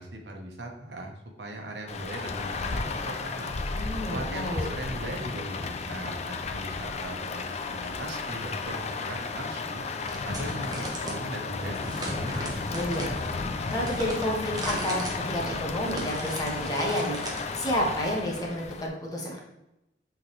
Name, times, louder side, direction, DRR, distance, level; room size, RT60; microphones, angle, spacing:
voice 1, 0.0-3.5 3.8-9.8 10.2-12.5, right 1 dB, 75° right, 2 dB, 1.1 m, -39 dB
Rain, 1.9-18.9, left 4 dB, 40° left, 0.5 m, -33 dB
voice 2, 3.7-4.7 12.7-13.1 13.7-15.0 15.3-19.4, equal, 20° left, -2 dB, 1.4 m, -30 dB
sound 1, 10.0-11.2 11.7-17.5, right 2 dB, 25° right, 1.2 m, -39 dB
8.3 x 3.9 x 3.2 m, 0.89 s
head